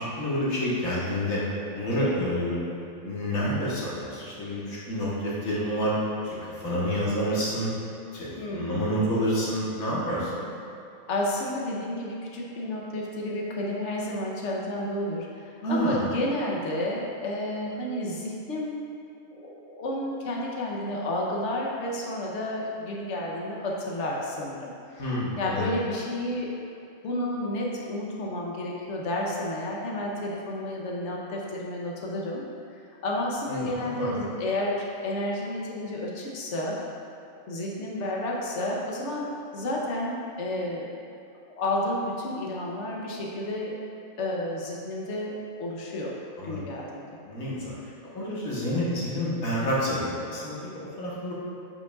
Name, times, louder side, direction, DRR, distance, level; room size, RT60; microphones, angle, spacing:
voice 1, 0.0-1.4 1.7-2.8 3.0-6.0 6.2-7.7 8.1-10.5 15.6-16.0 25.0-25.7 33.5-34.1 46.4-46.6 47.3-47.7 48.1-51.3, equal, 85° left, -7 dB, 1.7 m, -28 dB
voice 2, 8.4-8.8 11.1-18.9 19.3-24.7 25.4-26.5 27.0-32.4 33.0-36.8 37.5-40.9 41.5-43.8 44.2-45.3 45.6-46.1 46.4-47.0, left 1 dB, 60° left, -3 dB, 1.1 m, -31 dB
8.3 x 5.0 x 2.4 m, 2.7 s
omnidirectional pair, 1.4 m